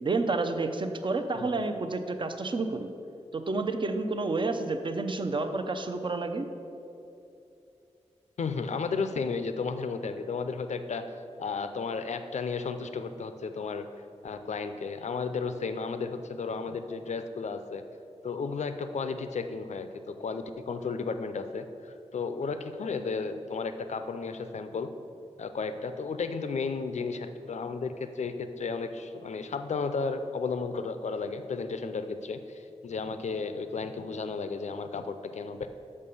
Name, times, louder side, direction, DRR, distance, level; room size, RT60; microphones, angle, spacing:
voice 1, 0.0-2.9 3.3-6.5, right 3 dB, 45° right, 7 dB, 0.6 m, -30 dB
voice 2, 8.4-13.9 14.2-17.8 18.2-24.9 25.4-35.7, left 4 dB, 75° left, 9 dB, 0.5 m, -33 dB
6.6 x 5.4 x 6.9 m, 2.7 s
wide cardioid pair, 100°, 12 cm